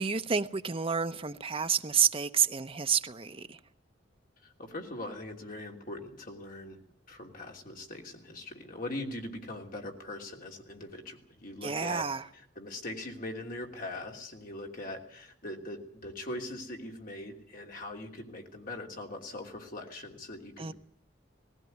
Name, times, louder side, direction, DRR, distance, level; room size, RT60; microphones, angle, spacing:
voice 1, 0.0-3.6 11.6-12.3 20.6-20.7, right 6 dB, 30° right, 0.8 m, -29 dB
voice 2, 4.4-6.8 7.1-12.1 12.5-20.7, left 1 dB, 45° left, 3.0 m, -41 dB
19.0 x 16.5 x 9.4 m
head